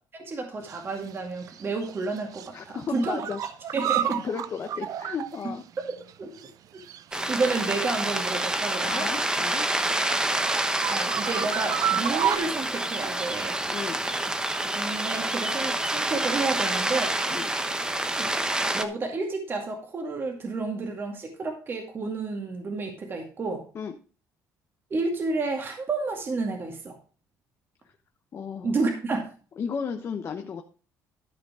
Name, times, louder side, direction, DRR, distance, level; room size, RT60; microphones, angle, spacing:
voice 1, 0.1-3.2 3.7-4.2 5.9-6.5 6.7-6.8 7.3-9.1 10.5-13.6 14.7-17.2 17.7-17.8 18.1-18.3 18.7-23.6 24.9-27.0 28.6-29.2, right 3 dB, 35° right, 2 dB, 2.2 m, -30 dB
sound 1, 0.6-1.1 1.4-2.5 2.8-6.1 6.4-6.5 6.8-8.7 9.0-12.4, right 10 dB, 60° right, 0.7 m, -32 dB
voice 2, 2.5-3.4 4.2-5.6 8.8-9.7 13.7-14.0 17.3-17.5 23.7-23.9 28.3-28.8 29.6-30.6, left 6 dB, 40° left, 5 dB, 1.0 m, -34 dB
sound 2, 7.1-18.8, right 1 dB, 10° right, 1.0 m, -28 dB
13.5 x 5.2 x 4.8 m, 0.39 s
cardioid pair, 120°, 7 cm